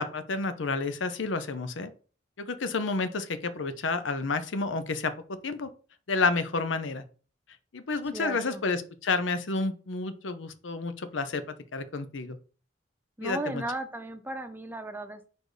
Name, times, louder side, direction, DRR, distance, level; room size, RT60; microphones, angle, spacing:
voice 1, 0.0-1.9 2.4-5.1 5.4-5.7 6.1-7.0 7.7-11.4 11.7-12.4 13.2-13.6, left 3 dB, 90° left, 11 dB, 0.7 m, -30 dB
voice 2, 8.1-8.6 13.2-15.3, right 1 dB, 10° right, 8 dB, 0.7 m, -36 dB
4.7 x 4.4 x 5.0 m, 0.39 s
head